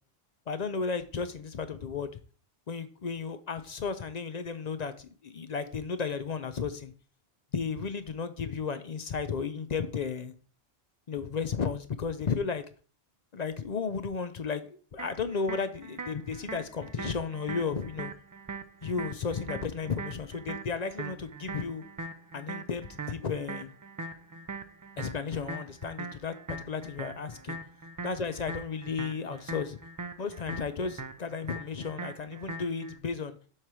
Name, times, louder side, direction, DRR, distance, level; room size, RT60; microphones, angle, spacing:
voice 1, 0.5-2.1 2.7-6.9 7.5-10.3 11.1-12.7 13.3-18.1 18.8-21.8 22.3-23.7 25.0-26.3 26.7-27.6 28.0-29.8 30.2-33.4, left 5 dB, 50° left, 0.6 m, -34 dB
sound 1, 15.0-33.0, right 3 dB, 30° right, 0.4 m, -41 dB
7.2 x 3.3 x 6.0 m
omnidirectional pair, 1.0 m